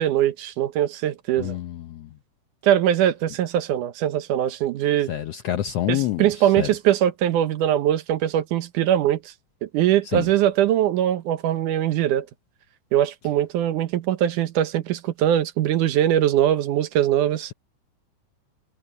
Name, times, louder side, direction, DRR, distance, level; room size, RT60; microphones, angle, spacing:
voice 1, 0.0-1.6 2.6-5.1 5.9-9.2 9.6-12.3 12.9-17.5, right 11 dB, 80° right, 2.5 m, -21 dB
voice 2, 1.4-2.1 5.1-6.7 10.0-10.3, left 12 dB, 75° left, 1.5 m, -27 dB
omnidirectional pair, 3.6 m